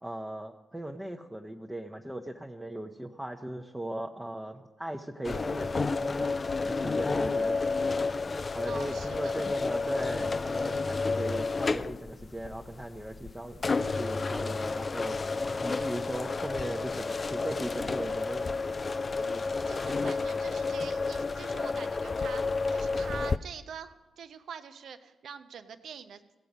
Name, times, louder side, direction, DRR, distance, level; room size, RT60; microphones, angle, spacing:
voice 1, 0.0-6.3 6.7-7.8 8.5-13.7 14.0-15.2 15.6-18.5, right 1 dB, 10° right, 1 dB, 0.9 m, -38 dB
sound 1, 5.2-23.4, left 4 dB, 40° left, 0.4 m, -31 dB
voice 2, 8.7-9.3 19.2-26.2, right 7 dB, 65° right, 10 dB, 0.7 m, -45 dB
17.0 x 6.8 x 5.3 m, 1.2 s
hypercardioid pair, 40°, 0 cm